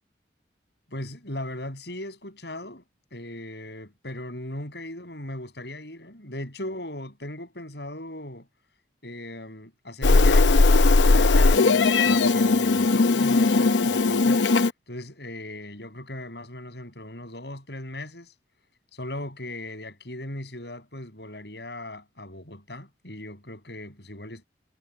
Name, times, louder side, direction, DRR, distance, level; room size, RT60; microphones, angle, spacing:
voice 1, 0.9-2.8 3.1-8.5 9.0-10.7 11.0-14.4 14.9-18.3 18.9-24.4, left 1 dB, 65° left, 6.4 m, -38 dB
Meow, 10.0-14.7, left 3 dB, 85° left, 0.7 m, -18 dB
head